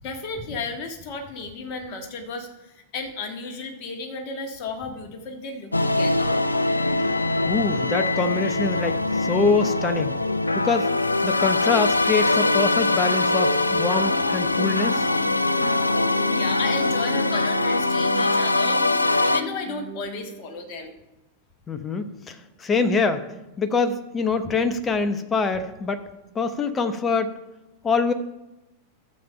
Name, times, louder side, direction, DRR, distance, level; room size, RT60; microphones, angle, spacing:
voice 1, 0.0-6.4 16.3-20.9 24.4-24.5, left 4 dB, 40° left, 3 dB, 1.6 m, -34 dB
sound 1, 5.7-19.4, left 2 dB, 85° left, 0.4 m, -22 dB
voice 2, 7.5-10.2 10.5-10.9 11.2-15.1 21.7-23.3 23.6-26.0 26.3-27.3 27.8-28.1, left 4 dB, 20° left, 9 dB, 0.8 m, -24 dB
sound 2, 13.7-20.8, right 3 dB, 35° right, 1.4 m, -39 dB
12.0 x 7.0 x 5.5 m, 0.99 s
figure-of-eight pair, 90°, 0 cm